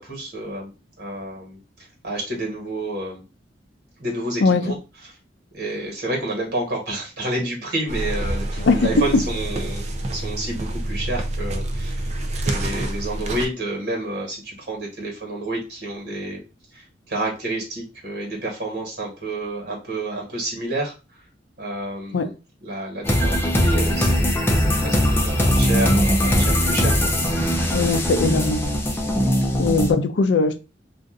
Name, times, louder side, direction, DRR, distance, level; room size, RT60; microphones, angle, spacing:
voice 1, 0.0-1.6 2.0-3.2 4.0-4.7 5.5-9.8 10.1-12.1 12.4-16.4 16.7-20.9 21.6-22.3 22.6-27.1 29.1-29.6, right 1 dB, 60° right, 1.5 m, -30 dB
sound 1, 7.9-13.5, right 1 dB, 40° right, 0.4 m, -27 dB
voice 2, 8.6-8.9 22.1-22.3 27.7-28.6 29.6-30.6, left 4 dB, 75° left, 0.4 m, -20 dB
sound 2, 23.0-29.9, equal, 15° left, 0.5 m, -20 dB
2.6 x 2.5 x 3.7 m
head